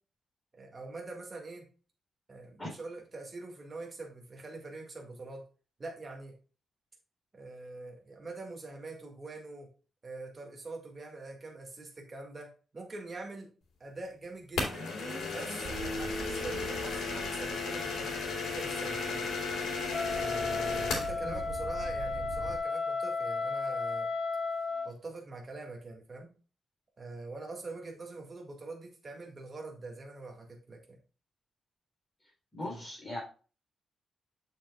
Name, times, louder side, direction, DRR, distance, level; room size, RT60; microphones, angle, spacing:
voice 1, 0.5-1.7 2.3-5.5 5.8-6.4 7.3-9.7 10.0-13.5 13.8-14.9 15.3-19.3 20.2-24.1 24.8-26.3 27.0-31.0 32.6-32.8, right 3 dB, 25° right, 0 dB, 1.9 m, -44 dB
sound 1, 14.6-21.2, left 4 dB, 90° left, 3.2 m, -34 dB
sound 2, 15.6-22.6, right 5 dB, 70° right, 1.0 m, -45 dB
Wind instrument woodwind instrument, 19.9-24.9, left 4 dB, 35° left, 1.0 m, -34 dB
voice 2, 32.5-33.2, left 1 dB, 10° left, -2 dB, 4.2 m, -39 dB
7.8 x 6.8 x 2.3 m, 0.36 s
wide cardioid pair, 165°, 0 cm